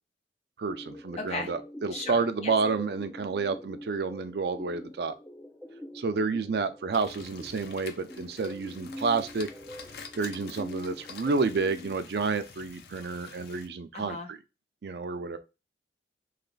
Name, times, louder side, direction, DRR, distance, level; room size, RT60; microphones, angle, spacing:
voice 1, 0.6-5.1 5.9-9.5 10.2-14.4 14.8-15.4, right 4 dB, 65° right, 0.4 m, -30 dB
sound 1, 0.7-11.9, equal, 10° left, 0.4 m, -44 dB
voice 2, 1.2-1.5 1.9-2.2 2.4-2.5 13.9-14.3, left 3 dB, 35° left, 0.8 m, -35 dB
sound 2, 6.9-13.7, left 5 dB, 60° left, 0.5 m, -48 dB
3.2 x 2.4 x 3.8 m
head